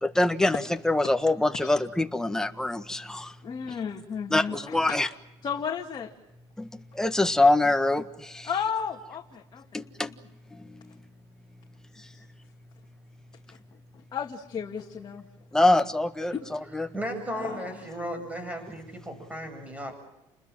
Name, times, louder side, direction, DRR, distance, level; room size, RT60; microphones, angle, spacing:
voice 1, 0.0-3.3 4.3-5.1 6.6-8.5 9.7-10.1 10.5-10.8 12.0-12.1 15.5-16.9, left 2 dB, 5° left, 1.6 m, -25 dB
voice 2, 3.4-4.9 5.4-6.1 8.4-9.7 13.5-13.6 14.1-15.3 16.3-16.4 17.3-17.6, left 7 dB, 40° left, 2.3 m, -33 dB
voice 3, 16.9-20.0, equal, 10° right, 8.0 m, -35 dB
29.5 x 21.0 x 7.6 m
cardioid pair, 110°, 12 cm